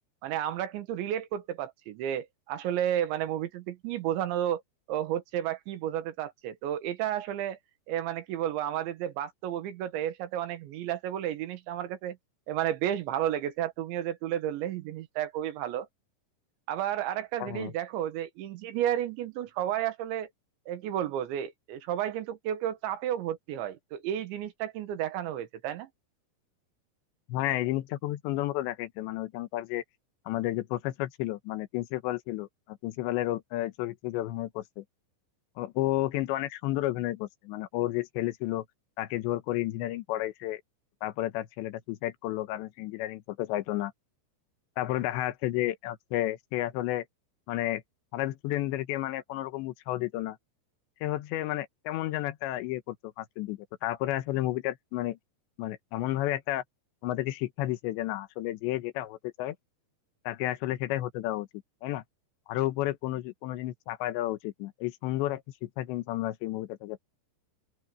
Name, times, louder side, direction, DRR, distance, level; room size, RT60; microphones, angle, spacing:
voice 1, 0.2-4.6 4.9-7.6 7.9-12.2 12.5-15.9 16.7-20.3 20.7-25.9, right 11 dB, 90° right, 3.9 m, -32 dB
voice 2, 17.4-17.7 27.3-29.8 30.3-34.8 35.6-38.6 39.0-40.6 41.0-43.9 44.8-47.1 47.5-47.8 48.1-50.4 51.0-55.2 55.6-56.6 57.0-59.6 60.3-61.5 61.8-62.0 62.5-67.0, left 15 dB, 85° left, 3.3 m, -32 dB
open air
omnidirectional pair, 5.1 m